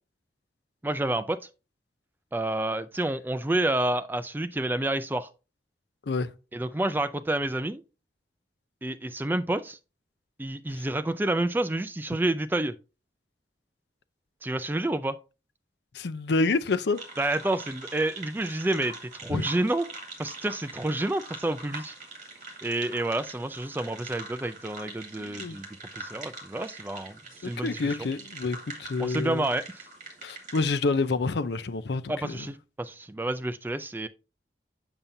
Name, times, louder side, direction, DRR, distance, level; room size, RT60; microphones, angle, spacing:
voice 1, 0.8-1.4 2.3-5.3 6.5-7.8 8.8-9.8 10.4-12.7 14.4-15.2 17.2-19.0 19.2-19.9 20.2-21.9 22.6-25.7 25.9-28.1 29.0-29.9 32.1-34.1, right 1 dB, 10° right, 0.4 m, -29 dB
voice 2, 15.9-17.0 19.3-19.4 25.2-25.6 27.4-29.5 30.2-32.5, left 3 dB, 70° left, 0.5 m, -28 dB
sound 1, 16.9-30.7, right 3 dB, 45° right, 2.2 m, -43 dB
7.2 x 6.9 x 2.7 m
head